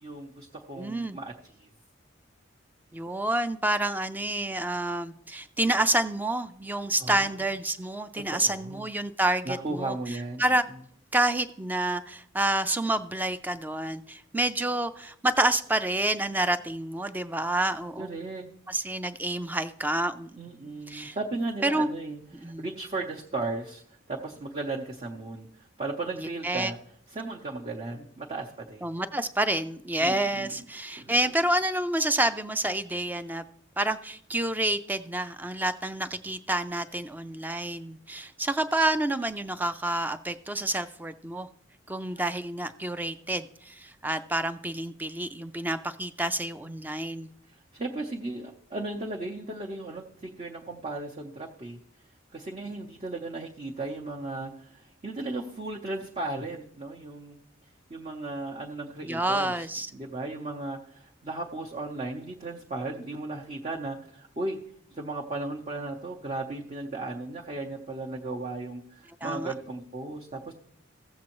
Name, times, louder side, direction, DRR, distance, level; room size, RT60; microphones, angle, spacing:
voice 1, 0.0-1.7 7.0-7.4 8.1-8.8 9.4-10.4 18.0-18.4 18.8-18.9 20.4-23.8 24.1-26.8 27.1-28.9 30.0-30.6 31.0-31.3 42.1-42.2 47.5-51.8 52.3-57.4 57.9-64.6 64.9-70.5, right 2 dB, 35° right, -2 dB, 0.7 m, -36 dB
voice 2, 0.8-1.2 2.9-10.6 11.1-18.1 18.7-20.4 20.9-21.2 21.6-21.9 22.4-22.6 26.2-26.7 28.8-33.4 33.8-41.5 41.9-47.3 59.0-59.9 69.2-69.5, right 1 dB, 10° right, 11 dB, 0.3 m, -28 dB
15.5 x 7.4 x 3.0 m, 0.66 s
head